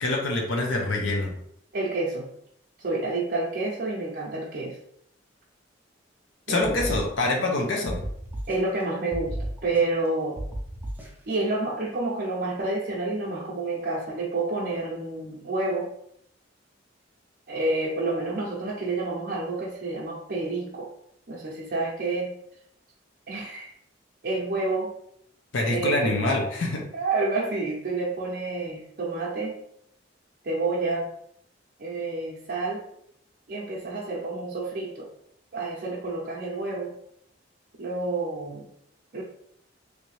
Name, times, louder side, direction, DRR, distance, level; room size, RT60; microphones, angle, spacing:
voice 1, 0.0-1.3 6.5-8.0 25.5-26.8, left 2 dB, 75° left, 0 dB, 0.7 m, -25 dB
voice 2, 1.7-2.3 2.8-4.8 6.5-6.8 8.5-9.4 9.6-10.4 11.3-15.9 17.5-20.9 21.3-22.3 23.3-23.7 24.2-25.0 25.6-26.2 26.9-29.6 30.4-31.1 31.8-32.8 33.5-35.1 35.5-36.9 37.8-38.7 39.1-39.2, right 2 dB, 55° right, -5 dB, 0.6 m, -29 dB
sound 1, 6.6-7.6 7.9-8.8 9.1-10.1 10.4-11.3, right 1 dB, 10° right, 0.5 m, -34 dB
3.2 x 2.7 x 3.1 m, 0.72 s
head